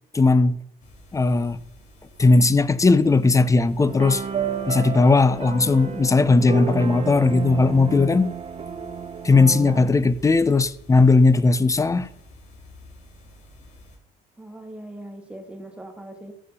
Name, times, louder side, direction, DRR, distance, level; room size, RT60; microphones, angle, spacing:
voice 1, 0.1-0.6 1.1-1.6 2.2-4.2 4.7-8.3 9.2-12.1, left 3 dB, 20° left, 0.8 m, -18 dB
sound 1, 0.8-14.0, equal, 45° left, 3.6 m, -49 dB
sound 2, 3.8-9.9, right 7 dB, 35° right, 1.5 m, -31 dB
voice 2, 14.4-16.3, right 1 dB, 5° right, 2.1 m, -40 dB
14.5 x 6.8 x 6.9 m
cardioid pair, 110°, 17 cm